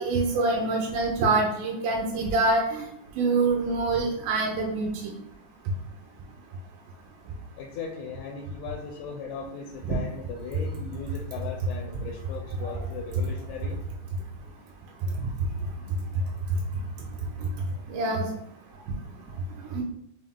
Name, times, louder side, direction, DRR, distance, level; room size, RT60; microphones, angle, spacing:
voice 1, 0.0-2.8 3.2-5.1 9.9-10.0 17.9-18.3 19.7-19.8, right 3 dB, 85° right, 0 dB, 2.2 m, -25 dB
voice 2, 7.6-13.8, left 5 dB, 80° left, 1 dB, 1.9 m, -38 dB
5.4 x 2.0 x 3.5 m, 0.75 s
omnidirectional pair, 3.6 m